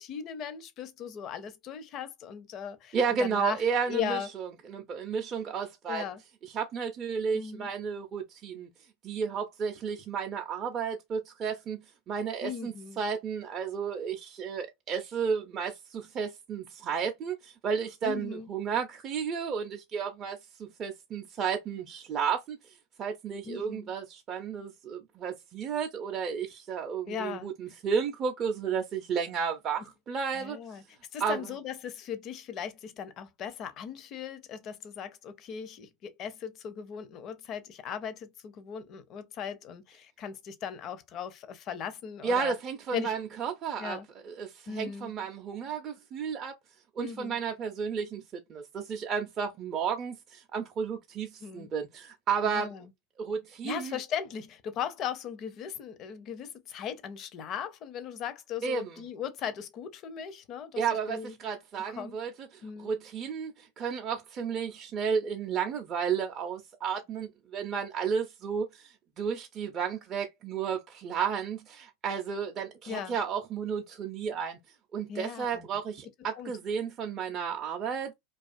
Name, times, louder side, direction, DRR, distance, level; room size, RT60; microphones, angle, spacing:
voice 1, 0.0-3.6 3.9-4.3 5.9-6.2 7.3-7.7 12.4-13.0 18.0-18.5 23.5-23.9 27.1-27.5 30.3-30.8 31.1-42.6 42.9-43.2 43.8-44.1 44.7-45.1 47.0-47.4 51.4-51.7 52.4-52.9 53.6-61.3 62.0-62.2 62.6-62.9 72.9-73.2 75.1-75.7 76.4-76.5, left 8 dB, 40° left, 0.5 m, -38 dB
voice 2, 2.9-6.0 6.5-8.7 9.0-11.8 12.1-22.6 23.0-30.6 31.2-31.4 42.2-44.0 44.2-46.5 47.0-48.2 48.5-52.7 53.2-54.0 58.6-59.0 60.8-74.6 74.9-78.1, right 6 dB, 35° right, 0.4 m, -32 dB
2.4 x 2.3 x 2.4 m
hypercardioid pair, 95°, 0 cm